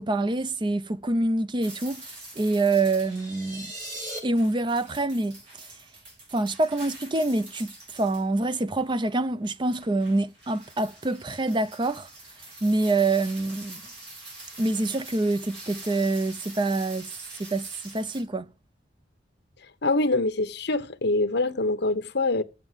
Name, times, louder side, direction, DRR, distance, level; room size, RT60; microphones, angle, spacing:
voice 1, 0.0-2.0 2.4-3.7 4.2-5.4 6.3-12.1 12.6-13.8 14.6-17.1 17.4-18.5, right 2 dB, 25° right, 0.5 m, -26 dB
sound 1, 1.6-3.3 4.3-8.3 8.8-8.9 9.6-18.2, right 2 dB, 70° right, 4.8 m, -45 dB
sound 2, 3.0-4.2, right 1 dB, 50° right, 4.8 m, -37 dB
voice 2, 19.8-22.4, left 2 dB, 65° left, 1.1 m, -24 dB
7.6 x 7.1 x 7.9 m
head